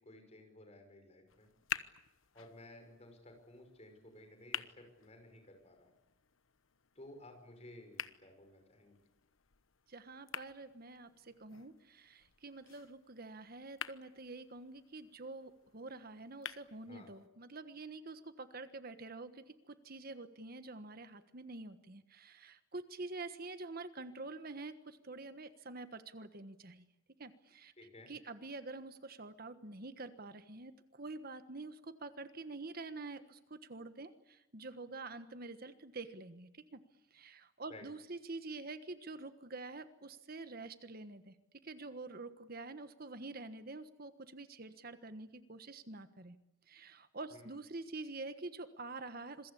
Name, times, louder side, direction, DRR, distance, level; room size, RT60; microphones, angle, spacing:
voice 1, 0.0-1.5 2.3-5.9 7.0-9.0 16.8-17.1 27.8-28.1 37.7-37.9 47.3-47.5, left 1 dB, 35° left, 5 dB, 5.8 m, -55 dB
sound 1, 1.3-17.3, left 9 dB, 90° left, 1.1 m, -49 dB
voice 2, 9.9-26.8 27.2-27.7 28.1-36.8 37.1-41.3 41.6-46.4 46.7-49.5, right 3 dB, 50° right, 11 dB, 1.4 m, -47 dB
27.0 x 22.5 x 8.5 m, 0.90 s
head